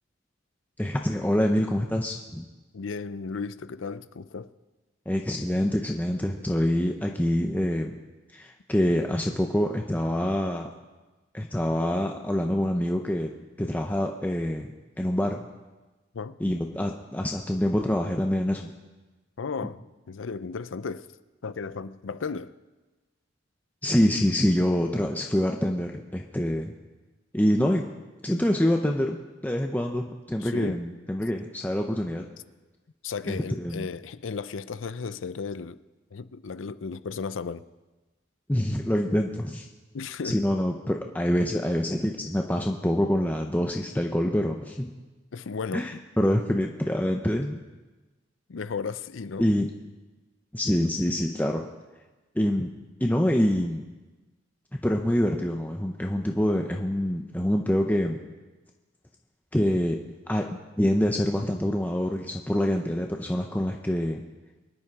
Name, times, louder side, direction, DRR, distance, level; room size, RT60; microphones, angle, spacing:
voice 1, 0.8-2.5 5.1-8.0 8.3-10.7 11.3-13.3 13.6-14.7 15.0-15.4 16.4-18.7 23.8-26.7 27.3-27.9 28.2-32.2 33.3-33.9 38.5-39.7 40.2-44.9 45.7-47.6 49.4-49.7 50.5-51.7 52.3-52.7 53.0-53.8 54.7-58.2 59.5-60.0 60.3-64.2, equal, 10° left, 0.7 m, -26 dB
voice 2, 2.7-4.5 16.1-16.4 19.4-19.8 20.1-21.1 21.4-22.5 30.4-30.8 33.0-35.8 36.1-37.7 39.9-40.4 45.3-46.0 48.5-49.5, left 5 dB, 90° left, 0.6 m, -34 dB
23.0 x 10.0 x 4.8 m
head